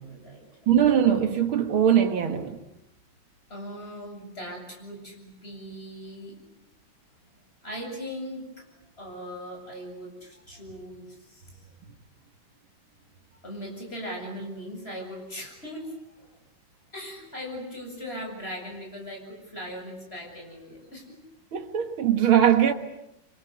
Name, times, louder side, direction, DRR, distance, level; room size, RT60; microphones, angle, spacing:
voice 1, 0.0-0.8 3.5-6.3 7.3-7.4 7.6-8.7 9.0-11.6 13.4-16.3 16.9-21.2, equal, 30° left, 8.1 m, -39 dB
voice 2, 0.7-2.6 21.5-22.7, right 9 dB, 85° right, 2.6 m, -21 dB
27.0 x 26.0 x 8.1 m
omnidirectional pair, 2.2 m